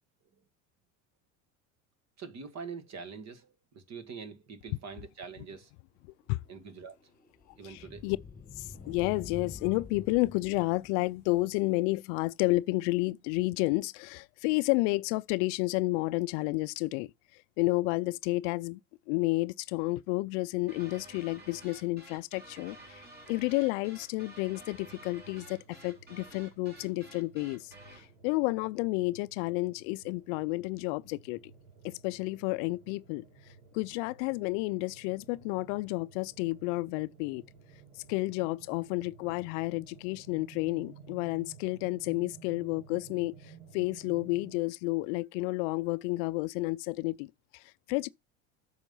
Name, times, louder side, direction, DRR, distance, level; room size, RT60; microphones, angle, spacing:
voice 1, 2.2-5.7 6.5-7.0 7.6-8.1, right 5 dB, 40° right, 1.9 m, -44 dB
sound 1, 5.9-11.5, left 4 dB, 20° left, 1.5 m, -47 dB
voice 2, 7.6-8.2 8.6-17.1 17.6-18.8 19.1-31.4 31.8-33.2 33.7-37.4 38.1-48.1, left 22 dB, 60° left, 0.5 m, -31 dB
sound 2, 20.7-28.1, right 2 dB, 25° right, 3.2 m, -52 dB
sound 3, 24.7-44.6, right 6 dB, 85° right, 2.3 m, -55 dB
8.9 x 6.4 x 5.5 m
hypercardioid pair, 80°, 40 cm